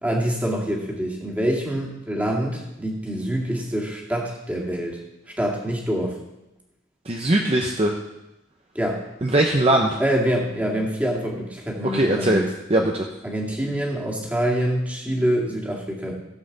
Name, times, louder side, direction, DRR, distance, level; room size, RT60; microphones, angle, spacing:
voice 1, 0.0-5.0 5.4-6.2 8.7-9.0 10.0-12.5 13.2-16.1, equal, 10° right, -2 dB, 2.0 m, -25 dB
voice 2, 7.1-7.9 9.2-10.0 11.9-12.4 12.7-13.1, right 1 dB, 30° right, 1 dB, 0.8 m, -20 dB
16.0 x 7.6 x 4.0 m, 0.94 s
head